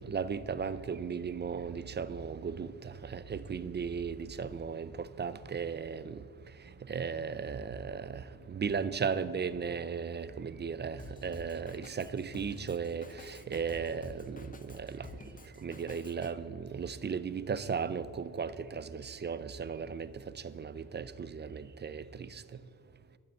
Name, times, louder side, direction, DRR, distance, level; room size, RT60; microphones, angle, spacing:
voice 1, 0.0-6.2 6.9-15.1 15.6-20.1 20.4-22.4, right 6 dB, 30° right, 14 dB, 0.4 m, -36 dB
Drum kit, 11.0-16.3, left 4 dB, 20° left, 0.6 m, -50 dB
13.0 x 7.9 x 8.1 m, 2.3 s
wide cardioid pair, 155°, 39 cm